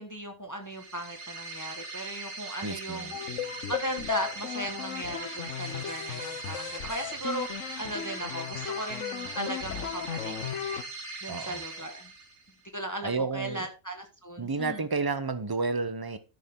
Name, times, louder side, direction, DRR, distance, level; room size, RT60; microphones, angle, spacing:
voice 1, 0.0-3.2 3.7-7.5 7.8-10.3 11.2-12.1 12.7-14.8, right 1 dB, 15° left, 1.2 m, -37 dB
sound 1, 0.6-12.6, right 3 dB, 90° right, 2.3 m, -40 dB
voice 2, 2.6-3.1 11.3-11.6 13.0-13.7 14.4-16.2, right 4 dB, 20° right, 0.8 m, -31 dB
sound 2, 3.1-10.8, left 10 dB, 70° left, 1.2 m, -36 dB
13.0 x 6.6 x 3.8 m
omnidirectional pair, 1.4 m